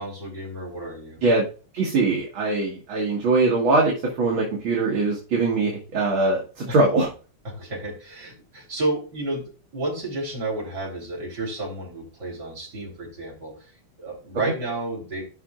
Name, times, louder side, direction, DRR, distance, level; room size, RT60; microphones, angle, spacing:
voice 1, 0.0-1.2 6.7-6.8 7.4-9.4 9.7-13.5 14.0-15.2, right 2 dB, 50° right, -3 dB, 4.2 m, -31 dB
voice 2, 1.7-7.1, right 3 dB, 70° right, -2 dB, 2.4 m, -22 dB
13.5 x 5.9 x 2.5 m, 0.36 s
omnidirectional pair, 2.4 m